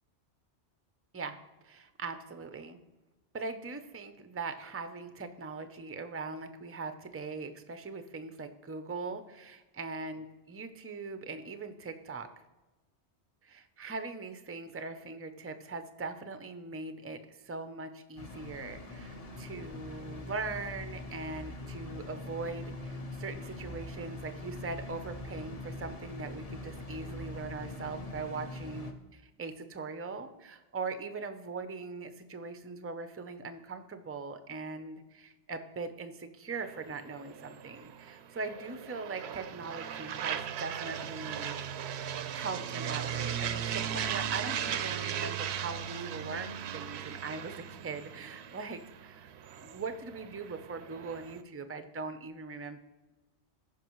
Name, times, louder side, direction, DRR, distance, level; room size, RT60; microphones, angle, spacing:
voice 1, 1.6-2.8 3.3-12.3 13.4-28.9 29.4-41.6 42.3-49.3 49.6-52.8, right 4 dB, 20° right, 9 dB, 0.4 m, -41 dB
sound 1, 18.2-28.9, left 2 dB, 35° left, 0.9 m, -43 dB
sound 2, 36.6-51.4, right 9 dB, 75° right, 0.8 m, -38 dB
14.5 x 5.4 x 3.0 m, 1.1 s
omnidirectional pair, 1.1 m